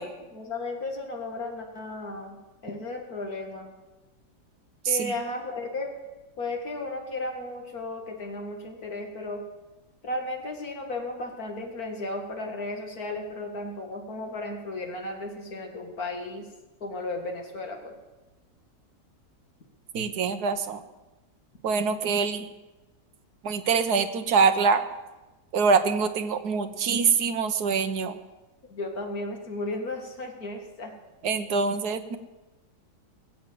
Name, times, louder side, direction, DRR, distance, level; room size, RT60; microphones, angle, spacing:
voice 1, 0.0-3.7 4.9-5.9 6.4-9.4 10.0-16.5 16.8-17.9 28.7-30.9, left 2 dB, 55° left, 2 dB, 2.5 m, -34 dB
voice 2, 19.9-20.8 21.6-22.5 23.4-24.8 25.5-28.2 31.2-32.2, right 5 dB, 65° right, 8 dB, 1.4 m, -24 dB
20.5 x 7.8 x 7.5 m, 1.1 s
omnidirectional pair, 1.9 m